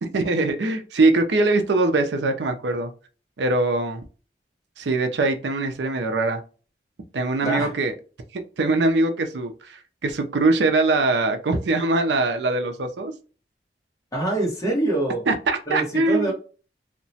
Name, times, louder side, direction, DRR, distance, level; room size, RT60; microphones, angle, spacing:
voice 1, 0.0-2.9 3.4-4.0 4.8-6.4 7.1-7.9 8.3-13.1 15.3-16.3, right 2 dB, 85° right, 6 dB, 0.5 m, -22 dB
voice 2, 14.1-15.2 15.7-16.3, right 2 dB, 20° left, -2 dB, 1.2 m, -24 dB
2.8 x 2.1 x 2.7 m, 0.35 s
head